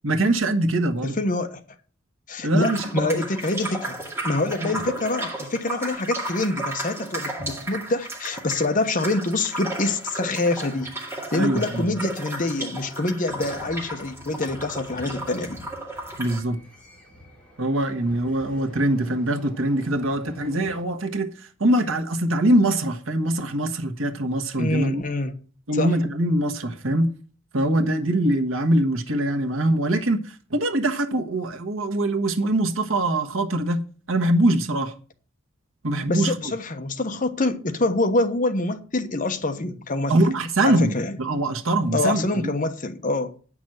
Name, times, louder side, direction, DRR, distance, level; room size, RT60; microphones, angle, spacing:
voice 1, 0.0-1.2 2.4-3.2 4.6-4.7 11.3-11.9 16.2-16.6 17.6-25.0 25.7-27.1 27.5-34.9 35.8-36.5 40.1-42.5, right 1 dB, 80° right, 1.3 m, -23 dB
voice 2, 1.0-1.6 2.3-4.0 4.2-10.9 11.3-15.6 24.6-25.3 25.7-25.9 36.1-40.2 40.6-41.1 41.9-43.3, left 2 dB, 40° left, 1.1 m, -25 dB
sound 1, 2.6-16.4, right 1 dB, 15° right, 2.2 m, -34 dB
sound 2, 13.3-20.8, left 1 dB, 5° left, 2.7 m, -47 dB
9.2 x 6.2 x 7.6 m
head